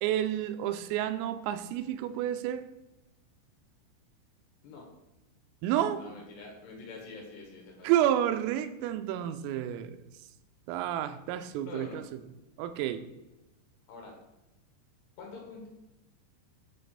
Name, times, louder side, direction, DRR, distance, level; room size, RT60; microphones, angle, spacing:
voice 1, 0.0-2.7 5.6-6.0 7.8-10.0 10.7-12.0 12.6-13.0, right 11 dB, 85° right, 10 dB, 3.3 m, -30 dB
voice 2, 6.0-7.9 11.5-12.0 13.9-14.2 15.2-15.7, left 4 dB, 65° left, 0 dB, 3.4 m, -45 dB
9.0 x 4.2 x 6.7 m, 0.98 s
omnidirectional pair, 5.9 m